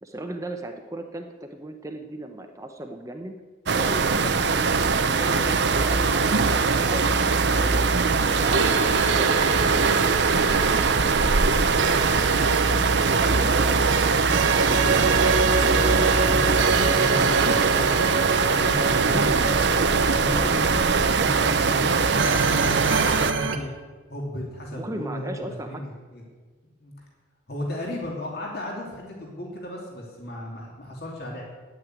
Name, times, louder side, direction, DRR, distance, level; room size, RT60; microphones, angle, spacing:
voice 1, 0.0-3.4 3.7-4.8 5.0-7.9 8.3-9.4 13.2-13.8 14.5-15.8 24.7-25.8, right 1 dB, 15° right, 5 dB, 0.8 m, -37 dB
sound 1, 3.7-23.3, right 4 dB, 60° right, 0.7 m, -22 dB
sound 2, 8.4-23.6, right 4 dB, 85° right, 1.3 m, -26 dB
voice 2, 14.4-15.1 15.4-19.6 20.1-23.7 24.1-26.2 26.8-26.9 27.5-31.4, left 1 dB, 50° left, -1 dB, 2.8 m, -35 dB
9.7 x 9.0 x 9.3 m, 1.4 s
head